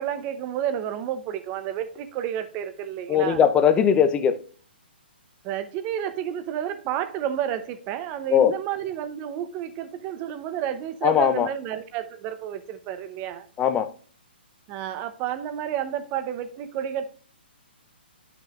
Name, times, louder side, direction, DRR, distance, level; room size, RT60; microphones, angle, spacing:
voice 1, 0.0-3.4 5.4-13.5 14.7-17.1, right 10 dB, 30° right, 0.7 m, -31 dB
voice 2, 3.1-4.4 8.3-8.5 11.0-11.5 13.6-13.9, left 8 dB, 15° left, 0.6 m, -19 dB
10.0 x 5.9 x 2.4 m
hypercardioid pair, 140°, 6 cm